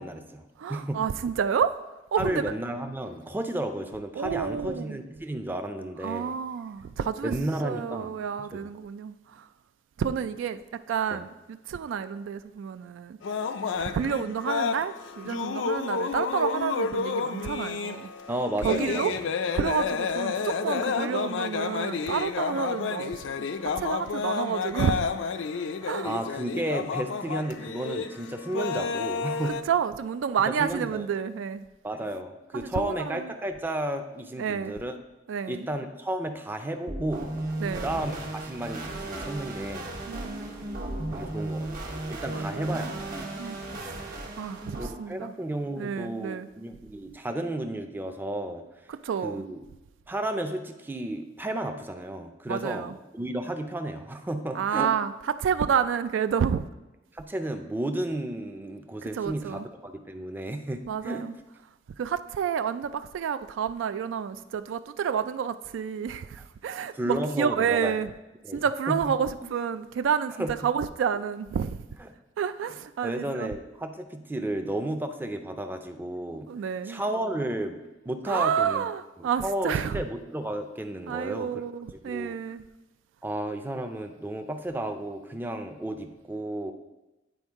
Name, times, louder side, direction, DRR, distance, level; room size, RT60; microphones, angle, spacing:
voice 1, 0.0-0.4 0.7-1.0 2.2-6.3 7.2-8.2 8.5-8.7 11.1-11.2 18.3-19.2 26.0-29.6 30.4-31.1 31.8-34.9 35.5-37.3 37.7-38.1 38.4-39.9 41.1-42.9 44.8-48.6 49.2-49.6 50.1-54.9 57.1-61.2 66.9-67.9 68.4-68.6 68.9-69.0 70.4-70.5 73.0-76.5 76.9-77.8 78.1-78.9 79.2-81.6 82.0-82.4 83.2-86.7, right 1 dB, 10° right, 0.4 m, -33 dB
voice 2, 0.6-1.8 2.1-2.5 4.2-5.0 6.0-7.4 7.6-9.5 10.0-13.2 13.8-18.1 18.6-19.1 19.5-23.5 23.8-25.1 25.8-26.1 29.7-31.7 32.5-33.3 34.4-34.7 35.3-35.6 37.6-38.0 40.1-41.0 42.3-42.8 43.4-43.6 43.8-43.9 44.4-45.3 45.8-46.5 48.9-49.4 52.5-53.0 54.5-55.1 55.4-56.6 59.1-59.7 60.9-61.3 62.0-68.1 68.5-71.8 72.4-73.5 76.5-77.0 78.3-80.0 81.1-82.7, right 7 dB, 90° right, 0.3 m, -29 dB
sound 1, 13.2-29.6, left 5 dB, 70° left, 0.4 m, -30 dB
sound 2, 36.9-44.9, right 1 dB, 50° right, 1.1 m, -35 dB
9.2 x 4.4 x 3.6 m
head